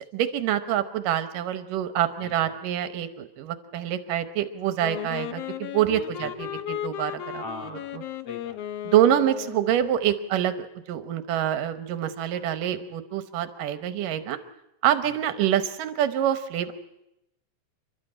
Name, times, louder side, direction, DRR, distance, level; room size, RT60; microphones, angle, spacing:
voice 1, 0.1-7.4 8.9-14.4 14.8-16.7, right 11 dB, 75° right, 11 dB, 2.5 m, -26 dB
voice 2, 2.2-2.6 6.2-6.6 7.4-8.8 15.0-15.1, left 3 dB, 50° left, 3 dB, 2.9 m, -42 dB
Wind instrument woodwind instrument, 4.8-9.8, left 11 dB, 90° left, 1.3 m, -35 dB
29.5 x 12.5 x 8.8 m, 0.88 s
omnidirectional pair, 4.0 m